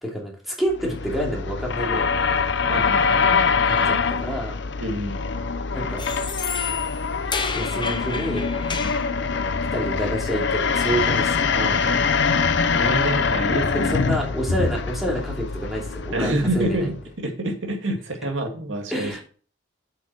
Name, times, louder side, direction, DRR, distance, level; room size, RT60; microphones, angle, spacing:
voice 1, 0.0-2.1 3.1-3.3 3.6-4.6 5.7-6.1 7.5-8.5 9.7-11.4 11.7-12.0 13.7-16.9 18.9-19.2, equal, ahead, -3 dB, 2.7 m, -28 dB
sound 1, 0.7-17.0, left 5 dB, 55° left, 0.7 m, -24 dB
voice 2, 2.7-3.2 4.8-5.2 8.8-8.9 11.5-12.0 12.7-14.0 16.1-19.1, right 1 dB, 70° right, 3 dB, 2.2 m, -27 dB
sound 2, 6.0-9.1, left 5 dB, 25° left, 0.7 m, -31 dB
7.9 x 6.4 x 4.6 m, 0.40 s
head